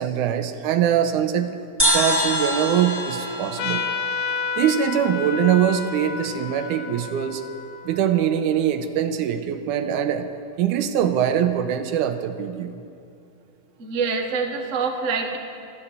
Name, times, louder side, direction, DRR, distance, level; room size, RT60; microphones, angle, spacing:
voice 1, 0.0-1.6 1.8-3.9 4.6-7.4 7.8-10.3 10.6-12.8, right 9 dB, 85° right, 8 dB, 2.2 m, -23 dB
sound 1, 1.8-5.3, equal, 5° right, 1.6 m, -26 dB
Trumpet, 3.6-8.7, left 5 dB, 85° left, 1.3 m, -31 dB
voice 2, 13.8-15.4, right 5 dB, 45° right, 3 dB, 0.9 m, -25 dB
14.0 x 12.0 x 8.1 m, 2.4 s
omnidirectional pair, 3.5 m